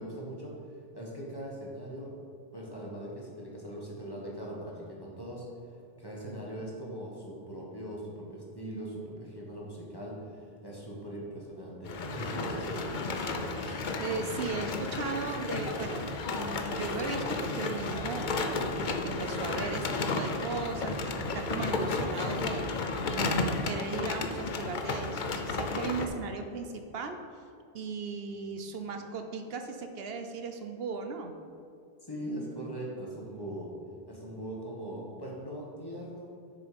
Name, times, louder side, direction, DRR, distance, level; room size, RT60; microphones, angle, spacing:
voice 1, 0.0-2.1 2.5-13.1 32.0-33.7 34.1-36.3, right 1 dB, 25° left, -4 dB, 1.7 m, -41 dB
sound 1, 11.8-26.1, left 3 dB, 55° left, 0.8 m, -33 dB
voice 2, 13.6-27.2 27.7-31.3, right 4 dB, 75° right, 6 dB, 0.9 m, -37 dB
7.5 x 6.7 x 5.2 m, 2.5 s
omnidirectional pair, 1.0 m